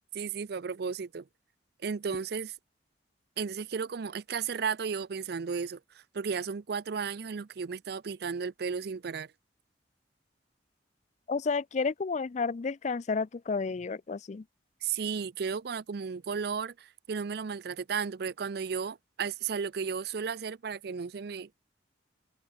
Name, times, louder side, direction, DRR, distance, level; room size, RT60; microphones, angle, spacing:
voice 1, 0.1-1.2 1.8-2.5 3.4-5.8 6.1-9.3 14.8-21.5, right 6 dB, 60° right, 0.5 m, -34 dB
voice 2, 11.3-14.4, left 4 dB, 40° left, 0.4 m, -31 dB
head